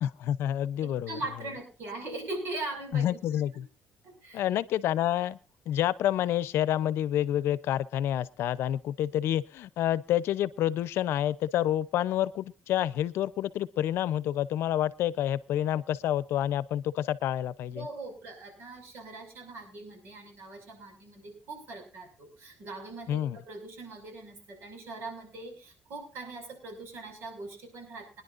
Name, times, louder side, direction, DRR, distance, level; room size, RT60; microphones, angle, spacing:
voice 1, 0.0-1.2 2.9-3.7 4.3-5.4 5.7-17.9 23.1-23.4, left 11 dB, 75° left, 17 dB, 0.7 m, -28 dB
voice 2, 0.8-3.6 4.0-4.4 17.7-28.2, right 2 dB, 70° right, 5 dB, 5.9 m, -41 dB
25.0 x 10.5 x 2.6 m, 0.34 s
cardioid pair, 115°, 4 cm